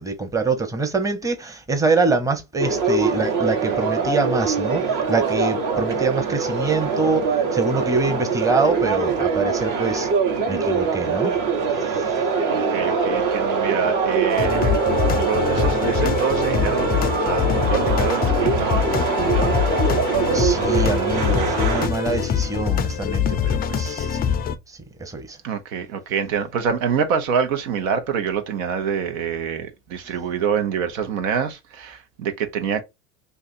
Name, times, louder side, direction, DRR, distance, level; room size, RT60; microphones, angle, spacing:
voice 1, 0.0-10.1 10.5-11.3 11.9-12.2 20.3-24.2 24.7-25.4, right 3 dB, 10° right, 0.7 m, -24 dB
sound 1, 2.6-21.9, right 5 dB, 55° right, 1.0 m, -23 dB
voice 2, 12.5-14.8 15.1-19.8 25.4-32.8, right 7 dB, 80° right, 0.8 m, -26 dB
sound 2, 14.3-24.6, left 9 dB, 25° left, 0.4 m, -23 dB
2.7 x 2.4 x 4.1 m
hypercardioid pair, 90°, 38 cm